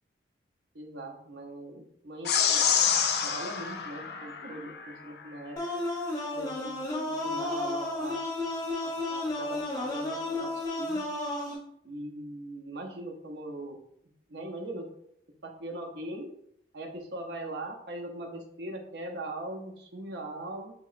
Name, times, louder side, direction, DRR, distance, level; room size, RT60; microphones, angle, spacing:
voice 1, 0.7-2.6 3.2-5.8 6.3-6.8 7.1-8.2 8.8-11.0 11.8-13.8 14.3-14.9 15.4-16.3 16.7-20.7, right 1 dB, 65° right, 2 dB, 0.6 m, -40 dB
sound 1, 2.3-4.9, left 7 dB, 60° left, 0.4 m, -27 dB
sound 2, 5.6-11.6, left 2 dB, 20° left, 0.7 m, -32 dB
4.0 x 2.8 x 2.4 m, 0.72 s
head